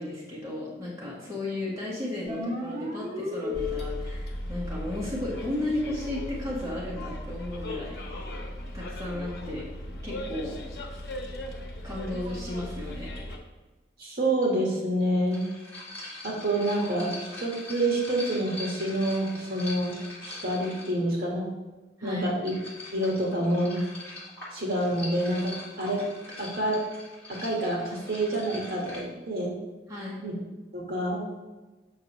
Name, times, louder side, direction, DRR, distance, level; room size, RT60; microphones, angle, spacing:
voice 1, 0.0-8.4 8.7-9.6 10.0-10.6 11.8-13.1 22.0-22.3 29.9-30.2, left 1 dB, 15° right, -6 dB, 1.3 m, -34 dB
sound 1, 2.3-4.2, left 3 dB, 40° right, 1.0 m, -33 dB
Bus, 3.5-13.4, left 1 dB, 65° left, 1.0 m, -37 dB
voice 2, 14.0-15.5 16.2-20.0 20.2-21.5 22.0-22.5 22.9-23.8 24.5-26.0 26.4-26.8 27.3-29.6 30.2-30.3 30.7-31.3, right 1 dB, 55° right, -2 dB, 1.5 m, -27 dB
sound 2, 14.4-14.5 15.3-21.1 22.1-29.0, left 2 dB, 10° left, 2.2 m, -42 dB
7.3 x 5.8 x 3.0 m, 1.2 s
head